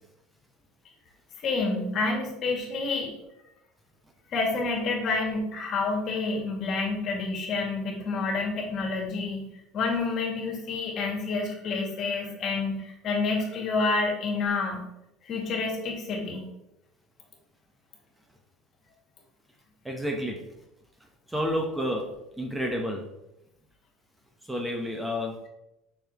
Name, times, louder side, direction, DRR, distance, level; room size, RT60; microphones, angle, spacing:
voice 1, 1.4-3.1 4.3-9.4 9.7-14.8 15.2-16.5, left 3 dB, 50° left, 0 dB, 2.2 m, -28 dB
voice 2, 19.8-20.4 21.3-23.0 24.5-25.5, equal, 5° right, 2 dB, 1.0 m, -30 dB
6.9 x 5.7 x 3.0 m, 0.88 s
supercardioid pair, 100°, 0 cm